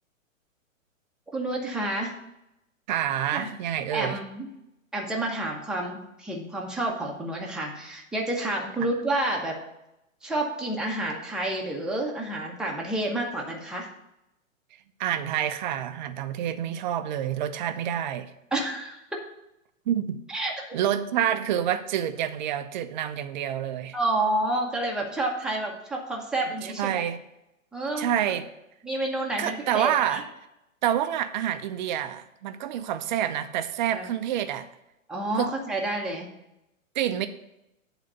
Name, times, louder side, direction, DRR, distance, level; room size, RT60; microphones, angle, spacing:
voice 1, 1.3-2.1 3.3-3.5 3.9-4.5 4.9-9.6 10.2-13.9 18.5-19.2 20.3-20.5 23.9-27.1 27.7-28.1 28.8-30.2 33.9-34.1 35.1-36.3 37.1-37.2, right 2 dB, ahead, -2 dB, 1.0 m, -29 dB
voice 2, 2.9-4.2 15.0-18.3 19.9-20.2 20.7-24.0 26.6-27.2 28.0-28.5 29.4-30.2 30.8-34.7 35.4-35.5 36.9-37.3, right 10 dB, 35° right, 10 dB, 0.6 m, -28 dB
8.4 x 4.0 x 6.8 m, 0.88 s
hypercardioid pair, 130°, 40 cm